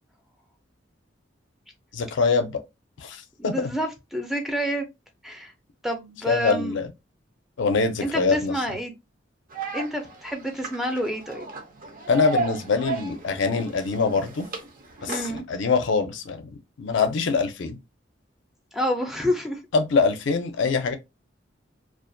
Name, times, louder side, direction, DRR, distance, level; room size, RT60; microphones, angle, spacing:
voice 1, 1.9-2.6 3.0-3.7 6.3-6.9 7.6-8.5 12.1-14.5 15.0-16.4 16.8-17.8 19.7-21.0, left 4 dB, 70° left, 0.4 m, -24 dB
voice 2, 3.4-4.8 5.2-5.5 5.8-6.7 8.0-8.9 9.7-11.5 15.1-15.4 18.7-19.6, equal, ahead, 0.4 m, -28 dB
sound 1, 9.5-15.4, right 4 dB, 50° right, 0.6 m, -35 dB
2.3 x 2.1 x 2.5 m
head